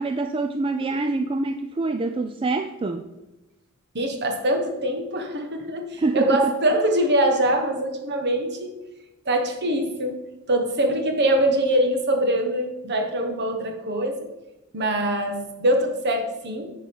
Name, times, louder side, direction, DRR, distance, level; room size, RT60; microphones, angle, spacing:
voice 1, 0.0-3.1 6.0-6.5, right 3 dB, 25° right, 8 dB, 0.3 m, -25 dB
voice 2, 3.9-8.8 9.2-10.2 10.5-14.3 14.7-16.7, right 1 dB, 50° right, 4 dB, 1.2 m, -23 dB
8.9 x 4.9 x 5.3 m, 0.99 s
head